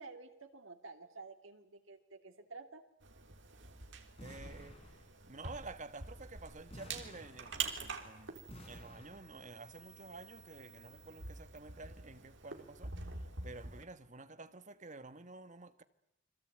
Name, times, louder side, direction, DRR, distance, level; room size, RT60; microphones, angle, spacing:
voice 1, 0.0-2.8, right 3 dB, 90° right, 2.9 m, -51 dB
sound 1, 3.0-13.8, right 5 dB, 65° right, 3.5 m, -47 dB
sound 2, 4.2-5.4 6.7-8.0 8.5-9.6, equal, 30° left, 5.3 m, -54 dB
voice 2, 4.2-8.4 8.6-15.8, right 3 dB, 40° right, 1.4 m, -51 dB
29.5 x 22.5 x 9.0 m
head